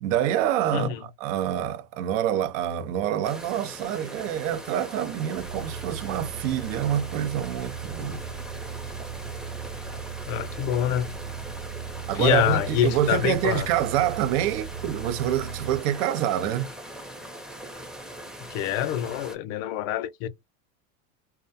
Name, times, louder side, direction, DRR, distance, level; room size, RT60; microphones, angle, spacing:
voice 1, 0.0-8.2 12.1-16.7, right 11 dB, 65° right, 0.5 m, -26 dB
voice 2, 0.7-1.0 10.3-11.1 12.1-13.7 18.5-20.3, left 11 dB, 70° left, 0.5 m, -26 dB
sound 1, 3.2-19.4, right 1 dB, ahead, 0.5 m, -41 dB
sound 2, 5.3-15.8, right 7 dB, 90° right, 1.0 m, -38 dB
2.3 x 2.1 x 2.5 m
supercardioid pair, 105°, 40 cm